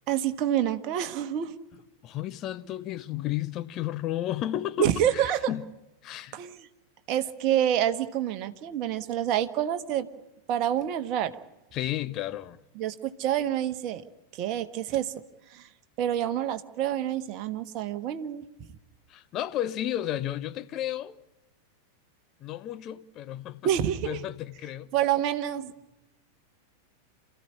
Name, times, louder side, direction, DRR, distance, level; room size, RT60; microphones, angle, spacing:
voice 1, 0.1-1.6 4.8-5.5 6.3-6.7 7.1-10.1 10.5-11.3 12.8-14.0 14.3-15.1 15.5-15.7 16.0-18.4 23.6-24.2 24.9-25.7, right 11 dB, 40° right, 1.4 m, -27 dB
voice 2, 2.0-5.7 6.0-6.4 11.7-12.6 19.1-21.2 22.4-23.7 24.0-24.9, left 13 dB, 35° left, 1.0 m, -33 dB
28.0 x 14.5 x 10.0 m
figure-of-eight pair, 90°, 0 cm